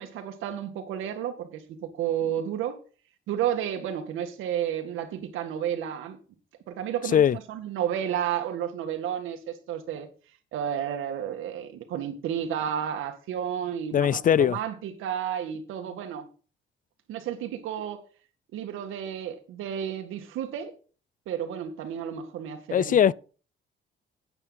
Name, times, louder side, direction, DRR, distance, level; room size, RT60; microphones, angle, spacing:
voice 1, 0.0-2.8 3.3-6.2 6.7-10.1 10.5-16.3 17.1-18.0 18.5-20.7 21.3-23.0, right 9 dB, 90° right, 1.9 m, -32 dB
voice 2, 13.9-14.6 22.7-23.1, left 9 dB, 45° left, 0.4 m, -20 dB
11.0 x 8.9 x 4.1 m
cardioid pair, 90°, 20 cm